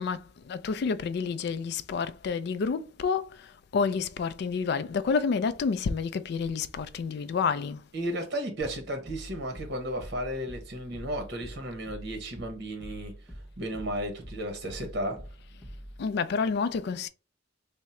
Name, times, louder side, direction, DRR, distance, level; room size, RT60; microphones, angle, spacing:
voice 1, 0.0-3.5 3.7-7.8 16.0-17.1, left 5 dB, 60° left, 0.3 m, -29 dB
voice 2, 7.9-15.3, right 1 dB, 60° right, 1.0 m, -34 dB
sound 1, 8.6-16.1, equal, 5° left, 1.0 m, -45 dB
3.6 x 2.1 x 4.2 m
head